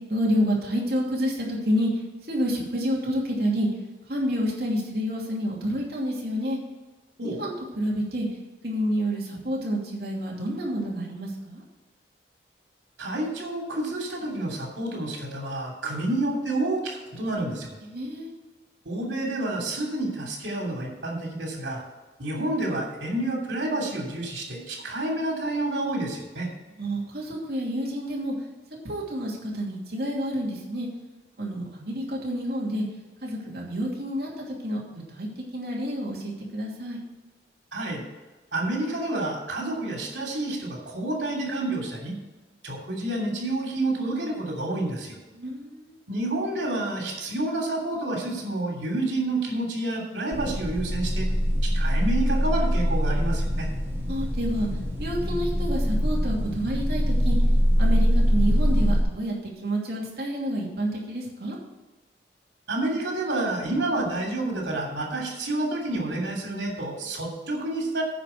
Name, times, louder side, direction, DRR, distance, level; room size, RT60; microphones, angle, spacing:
voice 1, 0.1-1.9 2.3-3.7 4.1-6.6 7.2-8.3 8.6-11.6 17.9-18.3 26.8-28.3 28.8-30.9 31.4-32.8 33.2-34.8 35.1-37.0 45.3-45.9 54.1-54.7 55.0-57.4 57.8-61.6, equal, 60° right, -3 dB, 2.7 m, -29 dB
voice 2, 13.0-17.8 18.8-21.8 22.2-26.5 37.7-38.0 38.5-42.2 42.6-45.1 46.1-51.3 51.6-53.7 62.7-68.0, right 2 dB, 90° right, 0 dB, 2.9 m, -29 dB
sound 1, 50.3-59.0, equal, 15° right, 1.8 m, -23 dB
9.9 x 5.1 x 8.0 m, 1.2 s
head